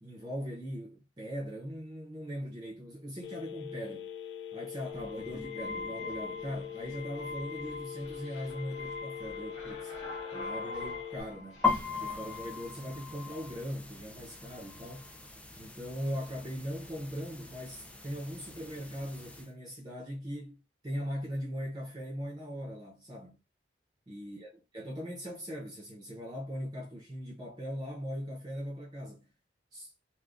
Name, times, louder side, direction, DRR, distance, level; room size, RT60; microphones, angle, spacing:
voice 1, 0.0-4.1 4.5-9.9 10.3-11.7 12.0-15.1 15.6-23.4 24.1-29.3 29.7-29.9, equal, 25° right, 0.8 m, -40 dB
Telephone, 3.2-11.2, left 10 dB, 80° left, 0.5 m, -43 dB
sound 1, 4.9-12.4, left 2 dB, 40° left, 1.5 m, -43 dB
sound 2, 11.6-19.4, left 5 dB, 5° left, 0.4 m, -38 dB
3.5 x 2.2 x 2.5 m
head